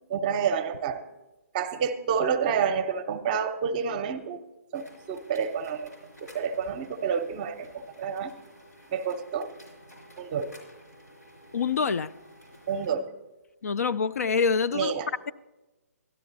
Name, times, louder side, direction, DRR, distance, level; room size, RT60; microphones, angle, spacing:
voice 1, 0.1-1.0 1.5-4.4 4.7-5.9 6.2-8.3 8.9-9.5 10.2-10.6 12.7-13.1 14.7-15.1, right 6 dB, 30° right, 10 dB, 0.7 m, -29 dB
sound 1, 4.7-12.9, equal, 90° left, 4.4 m, -52 dB
voice 2, 11.5-12.1 13.6-14.9, left 5 dB, 65° left, 17 dB, 0.4 m, -25 dB
12.0 x 11.5 x 4.0 m, 1.1 s
figure-of-eight pair, 140°, 9 cm